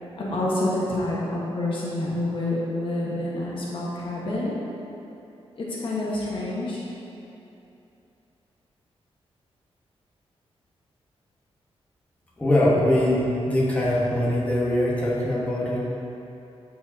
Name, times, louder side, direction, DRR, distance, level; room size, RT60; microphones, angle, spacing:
voice 1, 0.2-4.6 5.5-6.8, left 1 dB, 55° left, -6 dB, 1.4 m, -28 dB
voice 2, 12.4-15.8, left 1 dB, 15° left, -7 dB, 1.5 m, -22 dB
12.5 x 4.8 x 2.8 m, 2.9 s
wide cardioid pair, 120°, 11 cm